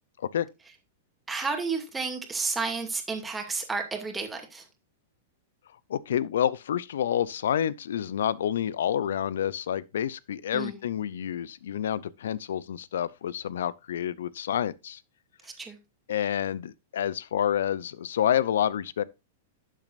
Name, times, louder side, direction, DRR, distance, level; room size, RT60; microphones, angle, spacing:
voice 1, 1.3-4.6 10.5-10.8 15.4-15.8, right 4 dB, 15° right, 2.4 m, -31 dB
voice 2, 5.9-15.0 16.1-19.0, left 10 dB, 75° left, 0.5 m, -28 dB
12.0 x 7.5 x 2.6 m
hypercardioid pair, 110°, 0 cm